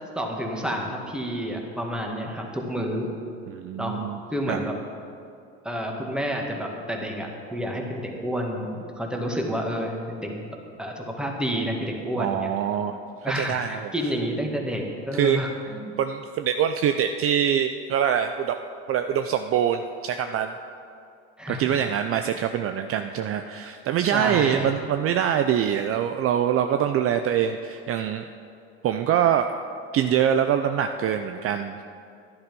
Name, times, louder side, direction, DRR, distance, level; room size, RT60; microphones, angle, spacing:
voice 1, 0.1-3.1 3.8-4.0 4.3-4.7 5.6-10.3 10.8-12.5 13.2-15.9 21.4-21.8 24.1-24.7, equal, 5° right, 1 dB, 1.9 m, -29 dB
voice 2, 3.5-4.2 4.5-4.6 12.2-13.9 15.1-15.4 16.0-18.6 18.9-20.5 21.5-28.2 28.8-29.6 29.9-31.8, right 9 dB, 45° right, 7 dB, 0.6 m, -24 dB
11.5 x 10.5 x 5.4 m, 2.5 s
supercardioid pair, 95°, 32 cm